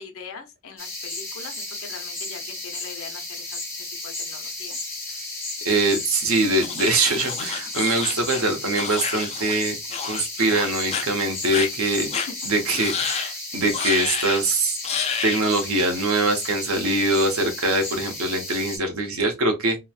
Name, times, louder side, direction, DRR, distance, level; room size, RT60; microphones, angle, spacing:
voice 1, 0.0-4.8 12.1-12.3 12.7-12.9, left 5 dB, 75° left, 0.7 m, -42 dB
sound 1, 0.8-18.8, left 2 dB, 10° left, 0.9 m, -34 dB
voice 2, 5.6-9.8 10.0-12.1 12.4-14.8 15.2-19.8, right 2 dB, 80° right, 0.8 m, -23 dB
sound 2, 6.6-9.6 9.9-10.2 10.5-11.0 11.5-11.7 12.1-12.3 12.7-13.3 13.7-14.4 14.8-15.4, left 6 dB, 30° left, 0.3 m, -29 dB
2.9 x 2.1 x 2.4 m
head